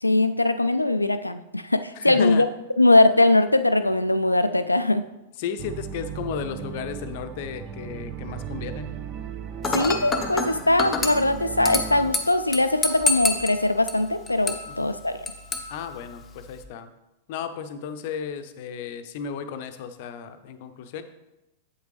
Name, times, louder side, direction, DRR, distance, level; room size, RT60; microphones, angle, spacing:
voice 1, 0.0-2.5 2.8-5.0 9.6-15.3, left 2 dB, 85° left, 11 dB, 0.3 m, -21 dB
voice 2, 1.9-2.5 5.4-8.9 14.7-14.9 15.7-16.9 17.3-21.0, left 7 dB, 50° left, 9 dB, 0.7 m, -34 dB
sound 1, 5.6-12.1, right 8 dB, 35° right, 0.6 m, -36 dB
Dishes pots and pans / Glass, 9.6-16.6, left 3 dB, 20° left, 0.8 m, -30 dB
8.1 x 7.9 x 3.3 m, 0.96 s
figure-of-eight pair, 95°, 0 cm